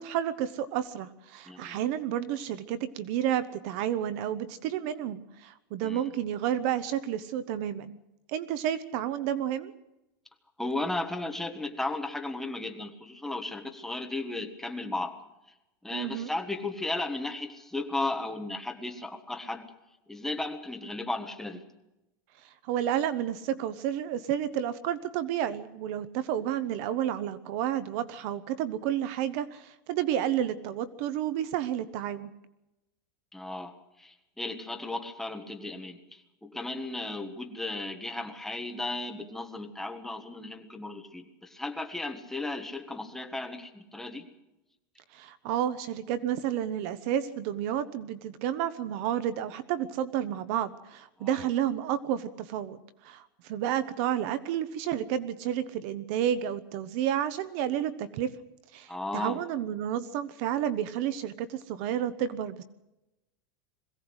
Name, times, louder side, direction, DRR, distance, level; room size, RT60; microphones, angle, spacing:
voice 1, 0.0-8.0 8.3-9.7 15.9-16.3 22.4-32.3 45.1-58.3 58.7-62.6, right 10 dB, 40° right, 15 dB, 0.9 m, -31 dB
voice 2, 1.5-1.8 5.8-6.0 10.6-15.2 15.8-19.7 20.1-21.6 33.3-33.7 34.0-44.3 51.2-51.4 58.9-59.4, left 2 dB, 5° left, 4 dB, 1.4 m, -35 dB
21.5 x 16.5 x 8.0 m, 0.95 s
supercardioid pair, 175°, 11 cm